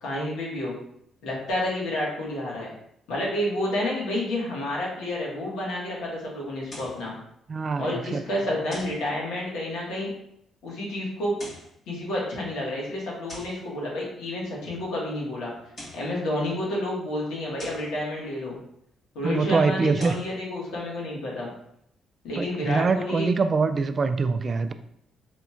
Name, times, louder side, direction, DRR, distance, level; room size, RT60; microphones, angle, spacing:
voice 1, 0.0-0.7 1.2-2.7 3.1-7.1 7.8-10.1 10.6-11.3 11.9-15.5 15.9-18.6 19.1-21.5 22.2-23.3, left 1 dB, 85° left, -4 dB, 1.5 m, -30 dB
sound 1, 6.7-7.1 8.7-9.1 11.2-11.8 13.3-13.6 15.6-16.1 17.6-17.9 19.8-20.3, left 1 dB, 45° left, 1.4 m, -42 dB
voice 2, 7.5-8.2 19.2-20.1 22.4-24.7, right 4 dB, 40° right, 10 dB, 0.3 m, -24 dB
5.1 x 2.9 x 2.4 m, 0.74 s
cardioid pair, 90°, 0 cm